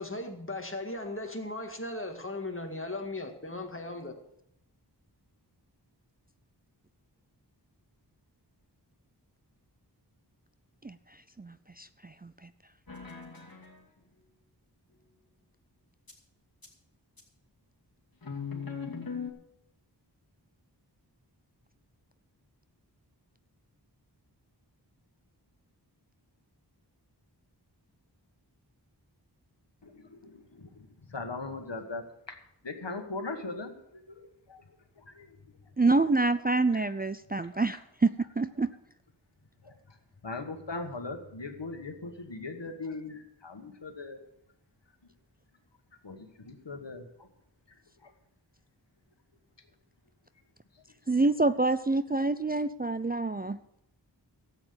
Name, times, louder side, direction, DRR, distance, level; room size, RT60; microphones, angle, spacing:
voice 1, 0.0-4.2, left 2 dB, 30° left, 4 dB, 1.9 m, -37 dB
voice 2, 10.8-12.5 35.8-38.7 51.1-53.6, right 3 dB, 20° right, 11 dB, 0.4 m, -27 dB
sound 1, 12.9-13.8 16.1-16.2 16.6-16.7 17.2-17.3 18.2-19.3, left 6 dB, 55° left, 2.5 m, -39 dB
voice 3, 29.8-32.4 32.6-34.6 35.0-35.4 36.7-36.8 37.5-37.7 39.6-40.0 40.2-44.2 46.0-47.3 48.0-48.1 50.7-50.8, left 3 dB, 80° left, 6 dB, 1.5 m, -40 dB
13.0 x 8.3 x 6.8 m, 0.75 s
wide cardioid pair, 45°, 42 cm